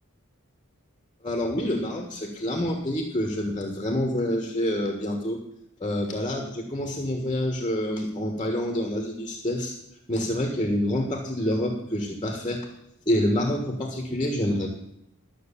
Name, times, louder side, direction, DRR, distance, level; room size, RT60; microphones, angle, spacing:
voice 1, 1.2-5.4 5.8-9.8 10.1-12.6 13.1-14.7, left 1 dB, 20° left, 2 dB, 1.5 m, -27 dB
12.0 x 6.5 x 8.4 m, 0.79 s
head